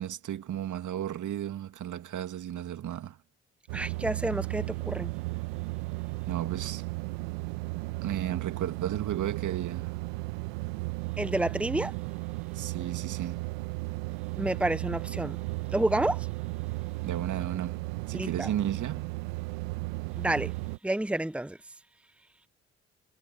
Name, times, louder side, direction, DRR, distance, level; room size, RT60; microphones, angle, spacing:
voice 1, 0.0-3.2 6.3-6.8 8.0-9.9 12.5-13.5 17.0-19.2, right 11 dB, 60° right, 2.5 m, -34 dB
voice 2, 3.7-5.1 11.2-11.9 14.4-15.4 15.7-16.3 18.1-18.5 20.2-20.5 20.8-21.6, right 1 dB, 5° right, 1.3 m, -29 dB
sound 1, 3.7-20.8, right 24 dB, 80° right, 1.7 m, -35 dB
hypercardioid pair, 40°, 34 cm